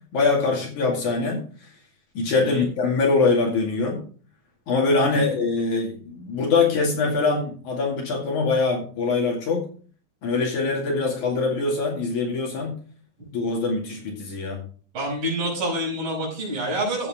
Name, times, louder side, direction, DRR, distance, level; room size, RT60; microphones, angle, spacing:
voice 1, 0.1-1.4 2.2-4.0 4.7-9.7 10.2-12.8 13.3-14.6, left 3 dB, 55° left, 1 dB, 3.6 m, -23 dB
voice 2, 2.3-2.7 4.9-5.4 14.9-17.1, right 1 dB, 35° right, -6 dB, 6.5 m, -28 dB
13.5 x 8.6 x 3.6 m, 0.41 s
omnidirectional pair, 4.2 m